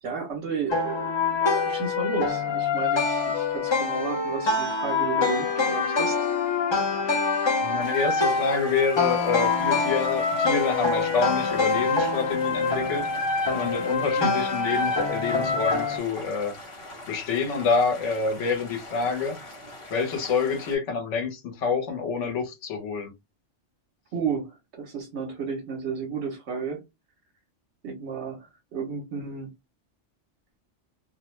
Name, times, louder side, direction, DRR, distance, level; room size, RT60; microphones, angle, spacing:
voice 1, 0.0-6.2 14.0-14.3 24.1-26.8 27.8-29.5, right 5 dB, 70° right, 1.0 m, -33 dB
Village Theme, 0.7-16.0, left 4 dB, 40° left, 0.4 m, -25 dB
voice 2, 7.6-13.1 13.5-16.6 17.1-19.3 19.9-23.1, left 5 dB, 75° left, 1.1 m, -27 dB
sound 1, 7.8-20.8, left 1 dB, 60° left, 1.3 m, -43 dB
2.5 x 2.1 x 3.0 m
omnidirectional pair, 1.3 m